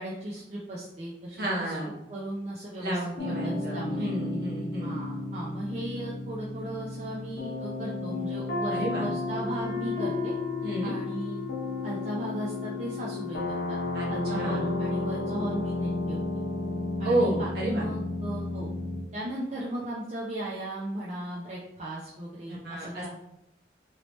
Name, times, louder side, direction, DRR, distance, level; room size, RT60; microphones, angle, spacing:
voice 1, 0.0-1.8 2.1-4.1 4.8-10.3 10.8-11.5 11.8-13.8 14.1-16.4 17.0-18.7 19.1-23.1, right 1 dB, 35° right, -6 dB, 0.5 m, -36 dB
voice 2, 1.4-1.9 2.8-4.9 8.7-9.0 10.6-10.9 13.9-14.1 14.3-14.6 17.0-17.9 22.5-23.1, right 1 dB, 55° right, -4 dB, 1.0 m, -30 dB
sound 1, 3.2-19.0, left 2 dB, 60° left, 0.7 m, -33 dB
Wind instrument woodwind instrument, 9.2-15.4, left 6 dB, 80° right, 1.1 m, -39 dB
3.1 x 2.8 x 3.0 m, 0.85 s
head